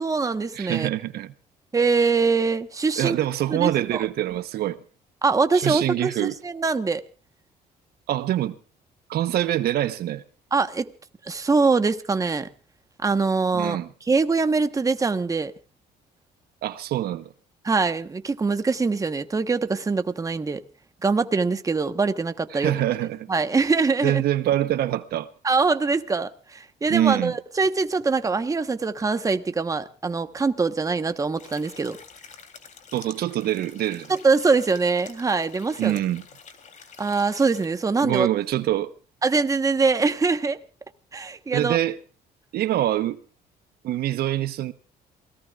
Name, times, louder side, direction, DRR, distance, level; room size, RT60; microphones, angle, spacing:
voice 1, 0.0-0.9 1.7-3.2 3.5-4.0 5.2-7.0 10.5-10.9 11.3-12.5 13.0-13.8 14.1-15.5 17.6-20.6 21.0-22.7 23.3-24.2 25.4-32.0 34.1-36.0 37.0-38.3 39.2-40.6 41.1-41.8, right 4 dB, 20° right, 1.2 m, -23 dB
voice 2, 0.5-1.3 3.0-4.8 5.5-6.4 8.1-8.6 9.1-10.2 13.5-13.9 16.6-17.3 22.5-23.3 24.0-25.3 26.9-27.3 32.9-34.1 35.8-36.2 38.0-38.9 41.5-42.0 42.5-43.2 43.8-44.7, right 13 dB, 65° right, 1.0 m, -25 dB
sound 1, 31.4-37.7, left 6 dB, 45° left, 3.4 m, -48 dB
28.5 x 18.0 x 2.5 m
cardioid pair, 110°, 17 cm